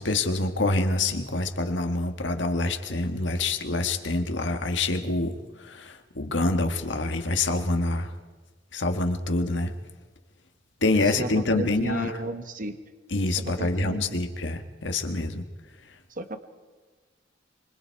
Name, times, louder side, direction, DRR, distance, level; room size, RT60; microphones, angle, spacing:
voice 1, 0.0-8.1 8.7-9.7 10.8-12.1 13.1-15.4, left 2 dB, 70° left, 6 dB, 1.8 m, -26 dB
voice 2, 11.0-12.7 13.4-14.0 16.1-16.4, right 2 dB, 45° right, 8 dB, 1.3 m, -33 dB
26.0 x 25.0 x 4.7 m, 1.3 s
head